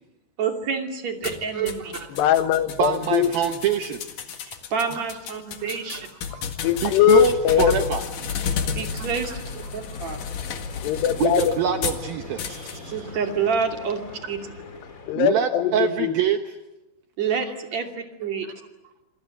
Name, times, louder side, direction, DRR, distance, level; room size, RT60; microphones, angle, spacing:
voice 1, 0.4-2.1 4.3-6.1 8.7-10.2 12.9-14.0 14.3-14.4 17.2-18.5, right 6 dB, 40° right, 4 dB, 3.2 m, -28 dB
sound 1, 1.2-12.0 12.4-12.8, left 6 dB, 55° left, 2.9 m, -32 dB
voice 2, 2.1-3.3 6.3-7.9 10.8-11.9 15.1-16.2, left 11 dB, 70° left, 10 dB, 3.1 m, -21 dB
voice 3, 2.8-4.0 5.0-5.1 5.6-5.9 6.3-6.4 6.8-8.0 9.0-9.1 11.2-13.0 15.2-16.4, right 9 dB, 70° right, 6 dB, 2.4 m, -25 dB
sound 2, 7.0-15.1, left 2 dB, 35° left, 1.3 m, -41 dB
27.0 x 26.5 x 7.9 m, 1.0 s
omnidirectional pair, 5.4 m